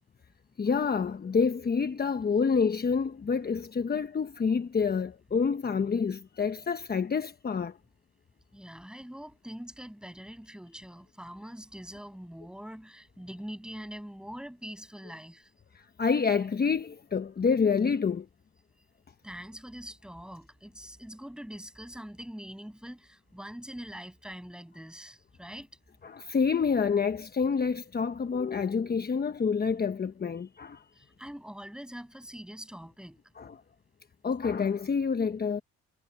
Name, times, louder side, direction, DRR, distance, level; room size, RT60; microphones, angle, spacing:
voice 1, 0.6-7.8 15.7-18.3 26.0-30.8 33.4-33.6 34.2-35.6, left 5 dB, 30° left, 1.1 m, -28 dB
voice 2, 8.5-15.5 19.2-25.7 30.9-33.2, equal, 5° right, 6.6 m, -44 dB
cardioid pair, 90°, 30 cm